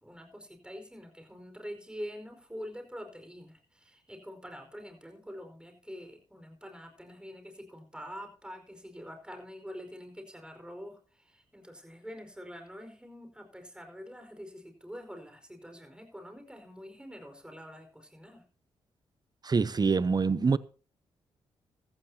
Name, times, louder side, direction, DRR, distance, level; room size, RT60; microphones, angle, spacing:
voice 1, 0.0-18.4, equal, 5° right, 4.8 m, -45 dB
voice 2, 19.4-20.6, right 4 dB, 35° right, 0.7 m, -25 dB
14.5 x 14.0 x 2.8 m
hypercardioid pair, 40°, 12 cm